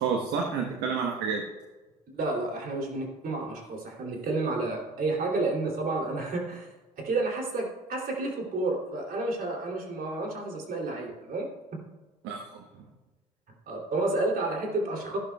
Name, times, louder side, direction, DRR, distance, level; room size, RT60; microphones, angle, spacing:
voice 1, 0.0-1.4 12.2-12.9, right 5 dB, 65° right, 2 dB, 1.2 m, -30 dB
voice 2, 2.1-6.7 7.0-11.5 13.7-15.2, right 2 dB, 50° right, 1 dB, 3.0 m, -30 dB
13.5 x 11.5 x 2.3 m, 1.2 s
hypercardioid pair, 60°, 19 cm